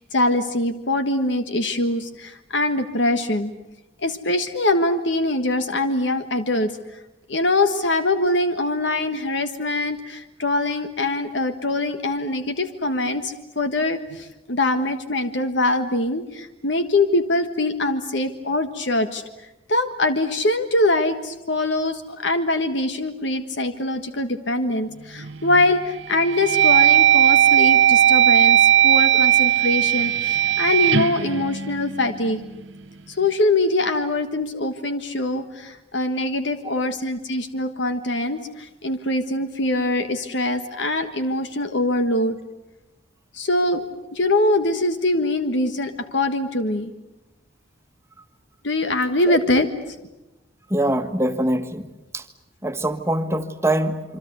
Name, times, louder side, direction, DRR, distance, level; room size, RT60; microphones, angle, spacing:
voice 1, 0.0-3.5 4.0-6.7 7.3-19.2 19.7-32.4 33.1-42.4 43.3-43.8 44.1-46.9 48.6-49.7, left 2 dB, 65° left, 8 dB, 1.5 m, -23 dB
sound 1, 25.2-25.6 26.1-32.3, right 10 dB, 70° right, 0.9 m, -17 dB
voice 2, 50.7-51.9 52.1-52.2 52.6-54.2, right 1 dB, 15° right, 8 dB, 1.6 m, -23 dB
27.0 x 25.0 x 8.1 m, 0.99 s
head